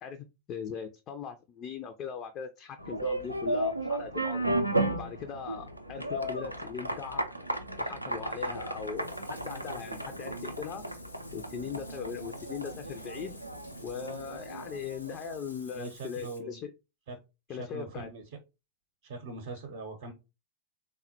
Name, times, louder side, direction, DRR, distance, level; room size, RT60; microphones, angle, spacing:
voice 1, 0.0-4.4 4.9-7.2 7.8-10.8 11.3-13.4 13.8-16.7 17.5-18.1, left 7 dB, 35° left, 7 dB, 0.3 m, -39 dB
sound 1, 2.8-15.5, right 1 dB, 90° right, 0.4 m, -34 dB
Bathtub (filling or washing), 8.3-16.4, left 1 dB, 85° left, 0.7 m, -53 dB
voice 2, 15.7-16.6 17.1-17.2 17.5-18.2 19.0-20.1, right 3 dB, 55° right, 3 dB, 0.7 m, -41 dB
3.5 x 2.1 x 2.8 m, 0.27 s
figure-of-eight pair, 90°, 0 cm